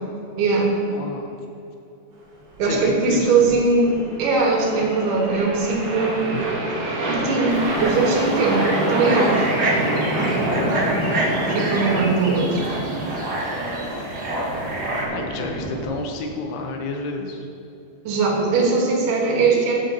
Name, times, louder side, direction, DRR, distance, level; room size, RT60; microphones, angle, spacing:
voice 1, 0.4-0.7 2.6-6.3 7.1-9.5 11.5-12.6 18.0-19.8, right 3 dB, 80° right, -1 dB, 3.4 m, -20 dB
voice 2, 0.9-1.3 2.6-3.6 6.3-6.4 10.6-10.9 13.8-14.2 15.1-17.5, left 3 dB, 90° left, 2 dB, 3.0 m, -30 dB
sound 1, 2.5-15.9, right 1 dB, 55° right, 3.3 m, -27 dB
sound 2, 7.5-15.0, right 1 dB, 35° right, 1.7 m, -27 dB
14.0 x 9.1 x 2.9 m, 2.8 s
omnidirectional pair, 4.5 m